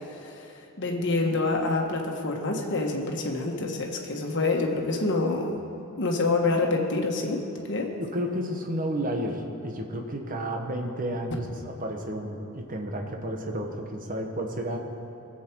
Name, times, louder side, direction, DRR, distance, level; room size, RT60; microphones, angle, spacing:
voice 1, 0.1-0.5 0.8-5.6 6.0-7.4 7.7-7.9, left 3 dB, 55° left, 1 dB, 1.4 m, -27 dB
voice 2, 7.9-14.8, equal, 40° right, 3 dB, 1.2 m, -32 dB
20.0 x 7.6 x 4.6 m, 2.9 s
head